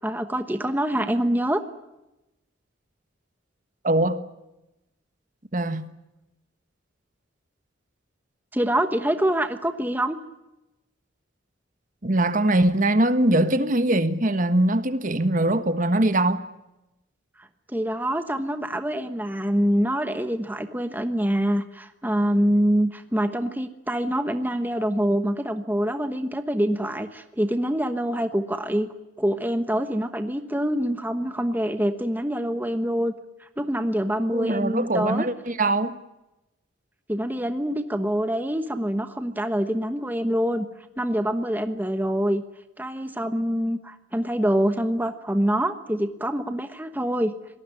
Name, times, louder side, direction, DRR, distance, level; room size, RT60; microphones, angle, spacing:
voice 1, 0.0-1.6 8.5-10.2 17.4-28.9 29.2-33.1 33.4-35.3 37.1-40.7 41.0-42.4 42.8-47.3, equal, 10° right, 1.2 m, -25 dB
voice 2, 3.8-4.2 5.5-5.9 12.0-16.4 34.3-36.0, right 1 dB, 40° right, 1.4 m, -22 dB
26.0 x 19.0 x 9.8 m
head